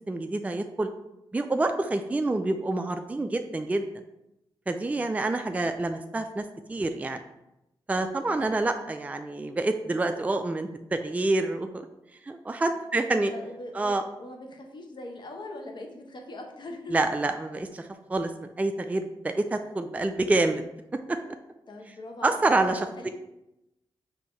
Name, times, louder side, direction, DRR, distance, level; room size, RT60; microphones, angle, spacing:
voice 1, 0.1-0.9 1.3-3.9 4.7-6.4 6.7-7.2 7.9-11.9 12.2-13.3 13.7-14.0 16.9-18.3 18.6-20.6 21.1-21.2 22.2-23.1, right 2 dB, 15° right, 7 dB, 0.3 m, -27 dB
voice 2, 13.0-16.9 21.7-22.4 22.8-23.1, left 1 dB, 55° left, 2 dB, 0.9 m, -41 dB
4.3 x 2.7 x 4.5 m, 0.89 s
cardioid pair, 55°, 9 cm